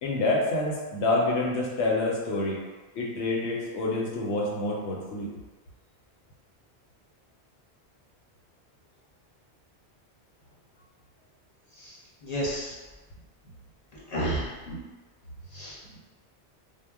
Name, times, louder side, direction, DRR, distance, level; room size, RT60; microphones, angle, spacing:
voice 1, 0.0-2.6 3.0-5.3 14.7-14.8, left 2 dB, 85° left, -2 dB, 0.9 m, -27 dB
voice 2, 11.7-12.7 14.1-14.5 15.5-15.8, right 1 dB, 45° left, -7 dB, 0.7 m, -31 dB
2.1 x 2.0 x 3.3 m, 1.3 s
omnidirectional pair, 1.1 m